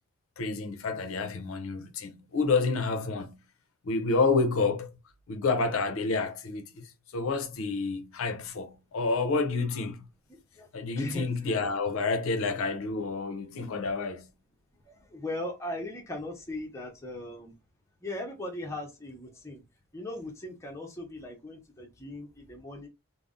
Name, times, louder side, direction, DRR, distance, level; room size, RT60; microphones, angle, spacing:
voice 1, 0.4-3.4 3.8-4.9 5.3-10.1 10.7-14.3, left 3 dB, 70° left, 0.5 m, -29 dB
voice 2, 10.3-10.7 11.0-11.5 14.9-17.5 18.0-19.6 19.9-22.9, left 1 dB, 15° left, 0.6 m, -39 dB
2.4 x 2.0 x 3.5 m
head